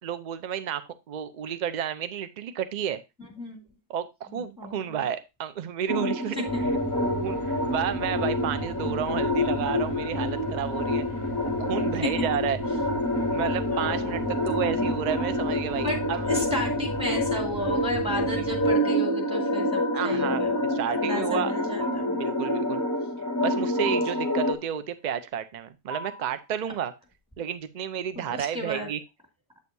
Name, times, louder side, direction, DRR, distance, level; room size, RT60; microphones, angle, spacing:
voice 1, 0.0-3.0 3.9-6.5 7.0-11.0 11.6-12.6 13.3-16.3 18.3-18.5 19.9-20.4 20.7-21.5 22.1-22.8 23.4-26.9 27.4-29.0, right 9 dB, 50° right, 12 dB, 0.7 m, -31 dB
voice 2, 4.3-5.0 6.4-6.6 12.0-12.1 13.7-14.6 15.7-16.0 16.3-22.2 23.8-23.9 28.2-28.9, left 1 dB, 5° right, 1 dB, 2.2 m, -33 dB
sound 1, 5.9-24.5, left 1 dB, 20° left, 0.7 m, -27 dB
sound 2, 6.5-18.7, equal, 35° right, 4.7 m, -38 dB
sound 3, 17.7-18.2 19.8-20.2 21.8-22.3 23.8-24.3 25.9-26.4, equal, 65° right, 1.3 m, -39 dB
8.4 x 6.4 x 2.7 m, 0.23 s
omnidirectional pair, 1.1 m